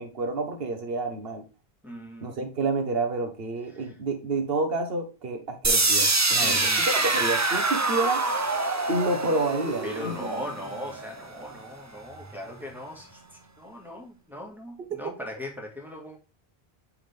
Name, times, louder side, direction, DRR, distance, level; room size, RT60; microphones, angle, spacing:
voice 1, 0.0-1.4 2.2-8.2 8.9-10.1 14.9-15.0, right 3 dB, 65° right, 1.4 m, -29 dB
voice 2, 1.8-2.4 3.8-3.9 6.4-6.8 9.8-13.2 13.6-16.2, left 1 dB, ahead, 1.8 m, -39 dB
sound 1, 5.6-11.6, right 3 dB, 20° right, 0.5 m, -25 dB
8.7 x 3.9 x 3.5 m
omnidirectional pair, 1.1 m